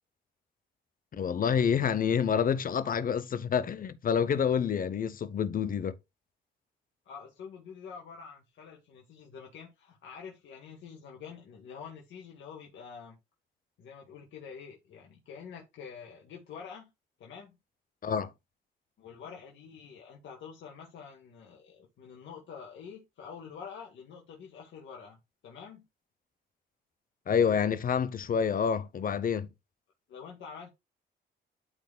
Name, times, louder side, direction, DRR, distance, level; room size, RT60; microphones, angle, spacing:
voice 1, 1.1-6.0 18.0-18.3 27.3-29.5, left 7 dB, 45° left, 0.8 m, -28 dB
voice 2, 7.1-13.2 13.8-16.9 17.2-17.6 19.0-25.2 25.4-25.9 30.1-30.7, left 6 dB, 75° left, 1.8 m, -47 dB
12.0 x 4.3 x 2.3 m
cardioid pair, 90°, 20 cm